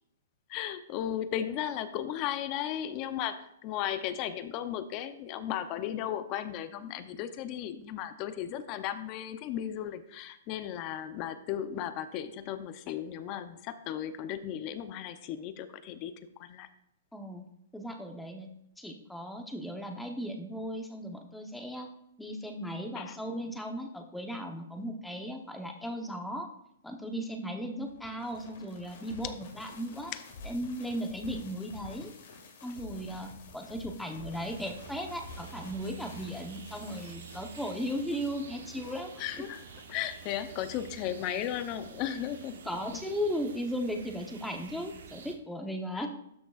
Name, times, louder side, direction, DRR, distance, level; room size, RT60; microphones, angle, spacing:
voice 1, 0.5-16.1 16.4-16.7 22.9-23.2 30.1-30.2 39.2-39.6 39.9-42.6 45.9-46.1, left 10 dB, 35° left, 12 dB, 0.6 m, -35 dB
voice 2, 17.1-17.4 17.7-18.5 18.8-21.9 22.2-26.5 26.8-30.1 30.4-32.1 32.6-39.1 39.4-39.5 42.7-46.1, equal, 5° left, 3 dB, 0.9 m, -36 dB
sound 1, 27.9-43.1, left 3 dB, 60° left, 2.0 m, -50 dB
sound 2, 34.3-45.4, right 7 dB, 75° right, 1.0 m, -49 dB
12.5 x 6.0 x 2.4 m, 0.76 s
hypercardioid pair, 145°, 0 cm